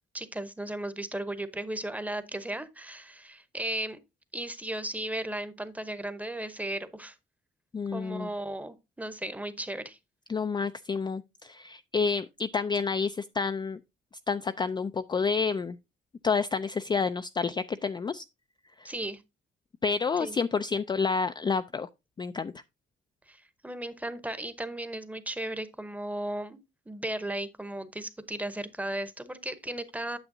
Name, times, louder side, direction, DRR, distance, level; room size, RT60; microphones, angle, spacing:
voice 1, 0.1-4.0 4.3-7.2 7.9-10.0 18.8-19.2 20.2-20.4 23.3-26.6 26.9-30.2, right 1 dB, 5° right, 0.9 m, -35 dB
voice 2, 7.7-8.3 10.3-13.8 14.3-15.8 16.2-18.2 18.8-18.9 19.8-21.9 22.2-22.5, left 5 dB, 25° left, 0.3 m, -29 dB
8.9 x 6.9 x 2.7 m
cardioid pair, 90°, 20 cm